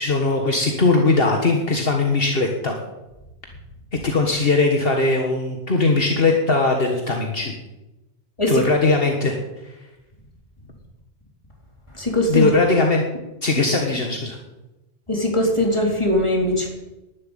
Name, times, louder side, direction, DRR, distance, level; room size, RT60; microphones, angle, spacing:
voice 1, 0.0-2.8 4.0-7.5 8.5-9.4 12.3-13.0 13.4-14.4, left 3 dB, 60° left, 2 dB, 1.8 m, -19 dB
voice 2, 11.9-12.5 15.1-16.7, left 1 dB, 25° left, 0 dB, 3.5 m, -20 dB
11.5 x 11.0 x 9.1 m, 1.0 s
omnidirectional pair, 1.1 m